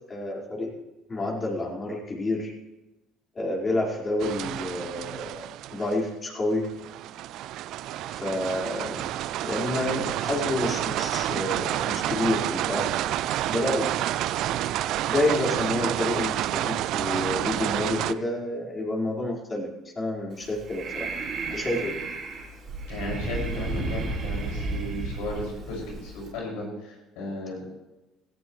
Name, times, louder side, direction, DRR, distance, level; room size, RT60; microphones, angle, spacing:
voice 1, 0.1-0.8 1.1-2.5 3.3-6.7 8.1-9.0 9.4-13.1 13.5-13.9 15.1-21.1 21.5-22.0, left 1 dB, 30° left, -3 dB, 4.7 m, -29 dB
sound 1, 4.2-6.1 6.6-18.1, right 13 dB, 70° right, 0.4 m, -29 dB
Breathing, 20.3-26.3, right 3 dB, 50° right, 4.3 m, -33 dB
voice 2, 22.9-27.6, left 1 dB, 85° left, -2 dB, 6.0 m, -34 dB
17.0 x 15.0 x 3.2 m, 1.0 s
supercardioid pair, 85°, 0 cm